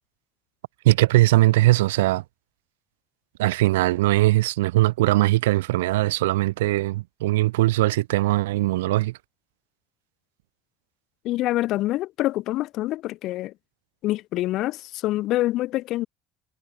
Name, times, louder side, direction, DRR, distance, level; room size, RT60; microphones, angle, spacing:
voice 1, 0.9-2.2 3.4-9.2, right 18 dB, 75° right, 5.3 m, -20 dB
voice 2, 11.2-13.5 14.0-16.1, left 16 dB, 60° left, 4.3 m, -26 dB
hypercardioid pair, 60°, 0 cm